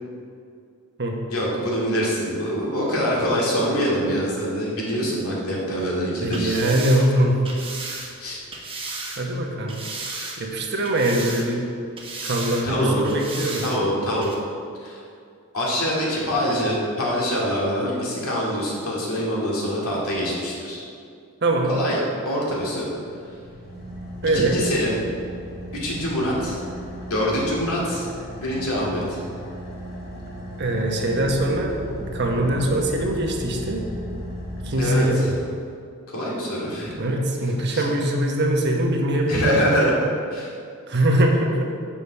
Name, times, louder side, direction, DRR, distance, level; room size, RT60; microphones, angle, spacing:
voice 1, 1.3-6.6 8.2-8.4 12.6-13.1 13.6-14.3 14.8-15.0 15.5-20.8 21.7-22.0 22.2-23.0 24.3-25.0 25.8-26.6 27.1-28.1 28.4-29.2 34.8-35.2 36.1-37.0 37.7-37.8 39.3-40.5, equal, 80° left, -4 dB, 2.2 m, -24 dB
sound 1, 6.2-9.2 9.7-10.5 10.8-11.7 12.0-12.6 13.0-13.8 14.2-14.3, right 3 dB, 25° right, 1.2 m, -34 dB
voice 2, 6.2-7.4 9.2-9.8 10.4-11.7 12.2-13.6 21.4-21.7 24.2-24.5 30.6-33.8 34.6-35.2 37.0-39.5 40.9-41.7, right 1 dB, 50° right, 1 dB, 1.1 m, -22 dB
Car / Idling, 22.8-35.5, equal, 45° left, 1.7 m, -36 dB
7.3 x 5.0 x 7.1 m, 2.4 s
head